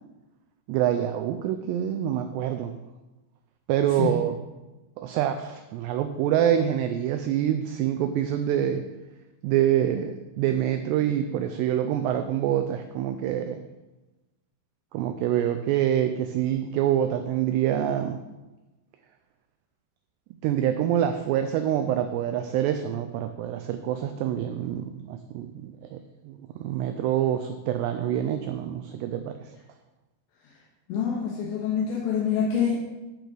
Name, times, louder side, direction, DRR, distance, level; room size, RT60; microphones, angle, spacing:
voice 1, 0.7-2.7 3.7-4.4 5.0-8.8 9.4-13.6 14.9-18.2 20.4-26.0 26.3-29.3, right 10 dB, 90° right, 7 dB, 2.4 m, -26 dB
voice 2, 30.9-32.7, left 7 dB, 75° left, -3 dB, 3.3 m, -26 dB
11.0 x 5.2 x 6.1 m, 1.1 s
omnidirectional pair, 5.5 m